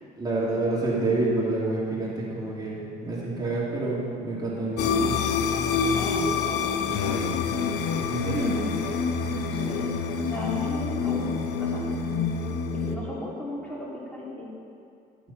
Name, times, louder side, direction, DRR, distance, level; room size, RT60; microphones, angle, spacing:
voice 1, 0.2-4.9 8.0-8.6, right 2 dB, 25° right, -6 dB, 2.8 m, -28 dB
sound 1, 4.8-12.9, left 5 dB, 75° left, 0.8 m, -27 dB
voice 2, 5.9-7.4 9.5-11.3 11.6-11.8 12.9-14.5, left 1 dB, 10° left, -6 dB, 2.7 m, -36 dB
12.5 x 7.4 x 5.5 m, 2.6 s
cardioid pair, 110°, 17 cm